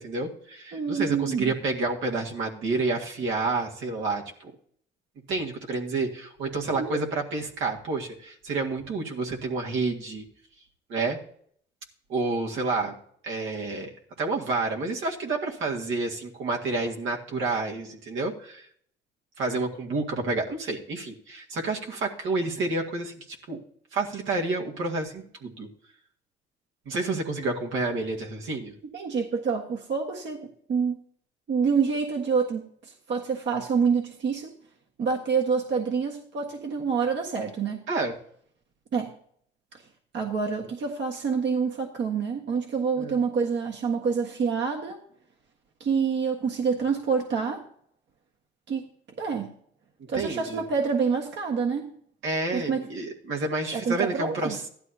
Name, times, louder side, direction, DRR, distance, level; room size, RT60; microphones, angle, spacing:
voice 1, 0.0-4.5 5.3-10.2 10.9-11.2 12.1-13.0 13.2-13.9 14.2-18.7 19.4-23.6 23.9-25.7 26.9-28.7 37.9-38.2 43.0-43.2 50.0-50.6 52.2-54.6, right 3 dB, 80° right, 0 dB, 2.0 m, -29 dB
voice 2, 0.7-1.5 6.8-7.0 28.9-31.0 31.5-34.5 35.0-37.8 38.9-39.1 40.1-45.0 45.8-47.6 48.7-48.9 49.2-49.5 50.1-51.9 52.5-52.8 53.7-54.6, right 5 dB, 65° right, 1 dB, 1.6 m, -27 dB
15.0 x 11.5 x 2.8 m, 0.62 s
cardioid pair, 90°, 20 cm